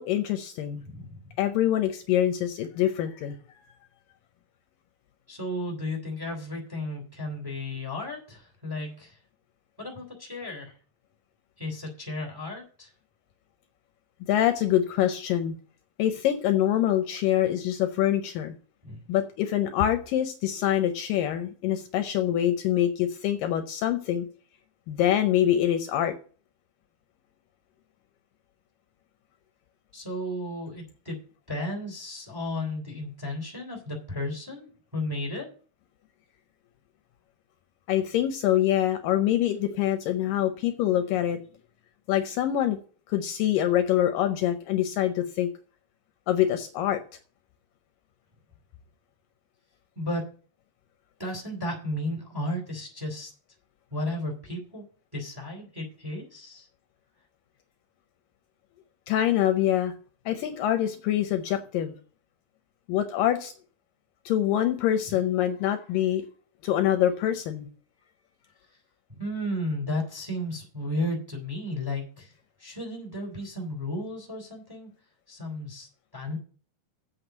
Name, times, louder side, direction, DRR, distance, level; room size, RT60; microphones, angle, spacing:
voice 1, 0.0-0.8 1.4-3.4 14.3-15.6 16.0-18.6 19.1-24.3 24.9-26.1 37.9-41.4 42.1-42.8 43.1-45.5 46.3-47.0 59.1-59.9 60.3-61.9 62.9-63.5 64.3-66.2 66.6-67.7, left 11 dB, 75° left, 7 dB, 2.2 m, -25 dB
voice 2, 0.7-1.2 5.3-9.2 9.8-10.7 11.6-12.9 18.8-19.0 29.9-31.2 31.5-35.5 50.0-50.3 51.2-53.3 53.9-54.8 55.1-56.7 69.1-72.3 72.6-74.9 75.3-76.4, left 1 dB, 5° right, 1 dB, 2.0 m, -34 dB
7.8 x 5.9 x 7.9 m, 0.41 s
omnidirectional pair, 4.3 m